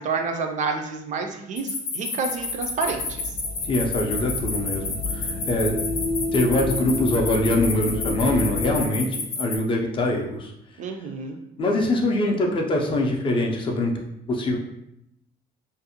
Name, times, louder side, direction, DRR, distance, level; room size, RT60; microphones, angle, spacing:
voice 1, 0.0-3.2 10.8-11.4, right 4 dB, 45° right, 4 dB, 0.4 m, -29 dB
sound 1, 1.6-9.6, left 4 dB, 70° left, 0.7 m, -29 dB
sound 2, 2.4-8.8, left 2 dB, 85° right, 0.9 m, -30 dB
voice 2, 3.6-5.9 6.3-10.5 11.6-13.9 14.3-14.6, left 1 dB, 30° left, 1 dB, 0.4 m, -23 dB
2.5 x 2.0 x 2.7 m, 0.81 s
cardioid pair, 125°, 17 cm